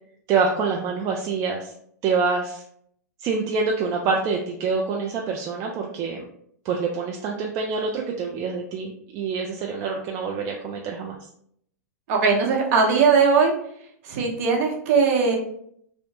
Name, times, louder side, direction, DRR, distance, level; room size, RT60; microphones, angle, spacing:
voice 1, 0.3-1.7 2.0-2.6 3.2-6.3 6.6-11.2, right 4 dB, 35° right, 0 dB, 0.4 m, -26 dB
voice 2, 12.1-13.5 14.1-15.4, right 5 dB, 55° right, 1 dB, 0.8 m, -19 dB
2.7 x 2.1 x 2.8 m, 0.67 s
hypercardioid pair, 110°, 9 cm